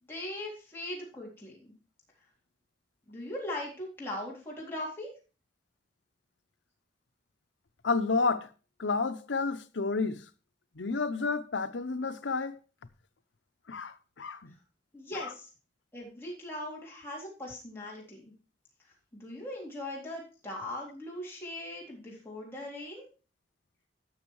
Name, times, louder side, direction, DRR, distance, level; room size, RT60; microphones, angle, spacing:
voice 1, 0.1-1.7 3.1-5.1 14.9-15.4 15.9-18.3 19.1-23.1, left 1 dB, 15° left, 3.6 m, -40 dB
voice 2, 7.8-8.5 8.8-10.3 10.8-12.6 13.7-14.5 15.1-15.3, left 4 dB, 90° left, 0.8 m, -30 dB
12.5 x 6.4 x 4.7 m
head